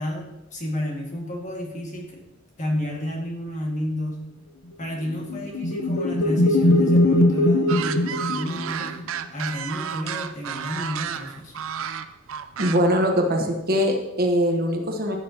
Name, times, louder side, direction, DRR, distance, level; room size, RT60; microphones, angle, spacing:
voice 1, 0.0-2.3 2.6-4.2 4.8-9.0 9.3-11.5, left 1 dB, 35° left, -1 dB, 1.9 m, -30 dB
sound 1, 5.0-9.0, left 1 dB, 80° left, 1.0 m, -21 dB
sound 2, 7.7-13.0, right 8 dB, 70° right, 0.5 m, -32 dB
voice 2, 12.6-15.2, equal, 45° right, 3 dB, 1.2 m, -22 dB
14.0 x 6.8 x 2.9 m, 0.97 s
head